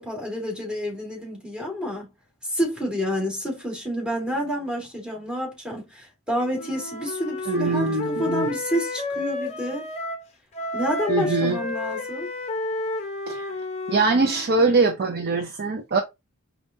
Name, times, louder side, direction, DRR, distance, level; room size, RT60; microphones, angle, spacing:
voice 1, 0.0-2.1 2.5-9.9 10.7-12.3, equal, 5° right, 2.1 m, -29 dB
Wind instrument woodwind instrument, 6.5-10.3 10.5-14.5, left 2 dB, 30° left, 0.7 m, -31 dB
voice 2, 7.5-8.5 11.1-11.6 13.3-13.5 13.9-16.0, right 3 dB, 45° right, 0.5 m, -22 dB
5.3 x 2.3 x 2.7 m
head